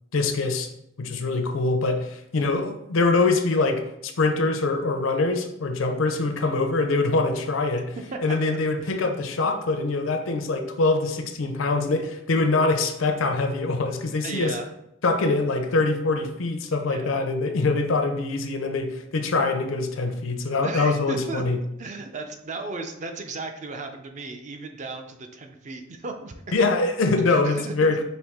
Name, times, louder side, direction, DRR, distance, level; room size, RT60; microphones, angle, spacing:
voice 1, 0.1-0.7 1.0-14.6 15.0-21.6 26.5-28.0, left 3 dB, 90° left, 6 dB, 0.6 m, -24 dB
voice 2, 8.1-8.6 14.2-14.7 16.9-17.2 20.6-21.4 21.8-26.3 27.3-28.0, right 3 dB, 40° right, 5 dB, 0.4 m, -35 dB
4.4 x 2.7 x 3.5 m, 0.81 s
head